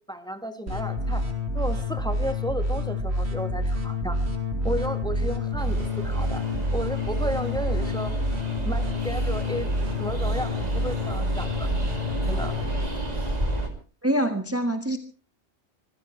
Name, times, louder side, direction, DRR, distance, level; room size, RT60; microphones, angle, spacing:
voice 1, 0.1-1.2 1.5-4.2 4.6-6.5 6.7-8.1 8.6-11.7 12.2-12.5, equal, 5° left, 7 dB, 1.6 m, -33 dB
sound 1, 0.7-12.9, left 1 dB, 70° right, 3.4 m, -27 dB
Train, 5.6-13.7, equal, 35° right, 3.0 m, -33 dB
voice 2, 14.0-15.0, right 1 dB, 15° right, 6 dB, 1.4 m, -25 dB
25.5 x 16.0 x 3.2 m, 0.38 s
omnidirectional pair, 1.2 m